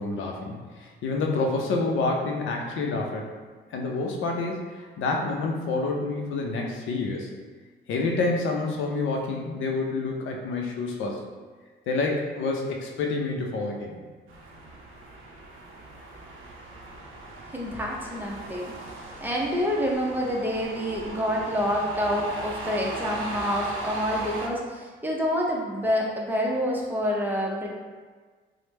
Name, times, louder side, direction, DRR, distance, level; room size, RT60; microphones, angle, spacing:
voice 1, 0.0-3.4 3.7-7.3 7.9-11.2 11.9-14.0, left 3 dB, 75° left, 0 dB, 0.5 m, -28 dB
sound 1, 14.3-24.5, right 2 dB, 90° right, 0.5 m, -38 dB
voice 2, 17.5-18.7 19.2-27.7, equal, 10° right, -2 dB, 0.6 m, -27 dB
3.1 x 2.0 x 3.1 m, 1.4 s
cardioid pair, 90°, 20 cm